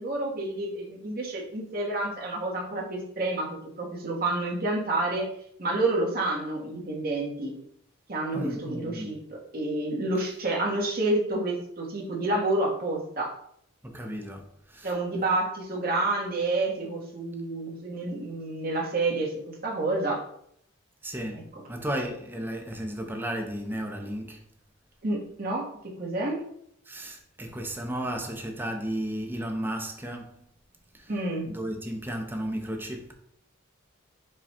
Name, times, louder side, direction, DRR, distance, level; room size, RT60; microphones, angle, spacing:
voice 1, 0.0-5.3 5.6-7.5 8.1-9.2 9.5-13.3 14.8-19.3 19.6-20.2 25.0-25.7 26.0-26.4 31.1-31.5, right 2 dB, 45° right, 1.1 m, -29 dB
voice 2, 8.3-9.1 13.8-14.9 21.0-24.4 26.9-30.4 30.9-31.1 31.4-33.1, right 1 dB, 10° right, 0.5 m, -34 dB
4.8 x 2.3 x 4.2 m
head